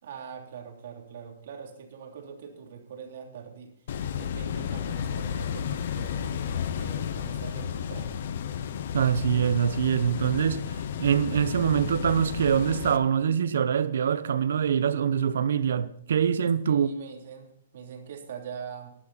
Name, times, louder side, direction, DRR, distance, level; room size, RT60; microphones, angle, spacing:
voice 1, 0.0-3.9 4.1-8.2 16.6-18.9, right 7 dB, 55° right, 3.1 m, -43 dB
sound 1, 3.9-13.0, left 8 dB, 50° left, 1.0 m, -32 dB
voice 2, 8.9-16.9, right 8 dB, 75° right, 1.0 m, -24 dB
14.0 x 11.5 x 4.2 m
hypercardioid pair, 170°, 0 cm